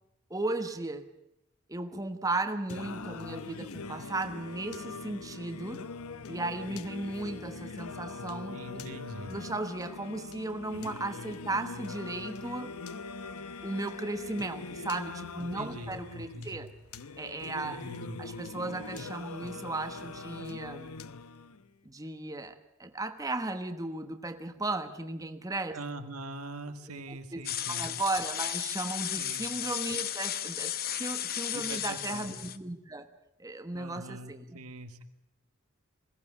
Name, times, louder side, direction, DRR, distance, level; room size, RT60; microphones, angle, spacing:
voice 1, 0.3-1.1 1.7-5.8 6.3-8.8 9.3-12.7 13.6-16.7 17.2-17.8 18.2-21.0 21.8-25.8 27.3-33.1 33.4-34.6, right 2 dB, 15° right, 7 dB, 1.2 m, -36 dB
Singing, 2.7-21.7, left 4 dB, 85° left, 1.0 m, -42 dB
voice 2, 8.5-9.3 15.4-16.7 17.6-18.2 25.7-27.9 29.2-29.5 31.5-32.4 33.7-35.0, right 2 dB, 90° right, 7 dB, 2.0 m, -43 dB
sound 1, 27.4-32.6, left 11 dB, 45° left, 1.0 m, -34 dB
21.5 x 17.0 x 9.8 m, 0.88 s
head